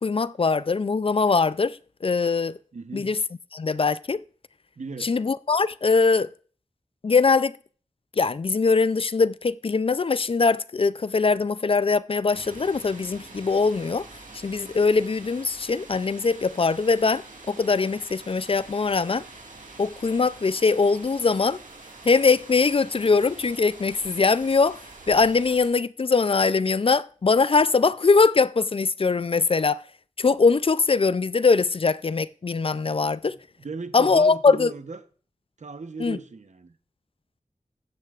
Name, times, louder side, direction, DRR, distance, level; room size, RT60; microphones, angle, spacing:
voice 1, 0.0-2.6 2.9-3.2 3.5-4.2 5.0-6.3 7.0-7.5 8.2-14.1 14.4-19.2 19.8-21.6 22.1-24.8 25.1-29.8 30.2-33.4 33.9-34.7 36.0-36.2, left 4 dB, 45° left, 0.4 m, -22 dB
voice 2, 2.7-3.2 4.8-5.1 33.3-35.1 35.6-36.8, right 4 dB, 65° right, 0.9 m, -37 dB
sound 1, 12.3-25.7, right 3 dB, 85° right, 1.9 m, -45 dB
14.0 x 9.6 x 2.4 m
wide cardioid pair, 50°, 13 cm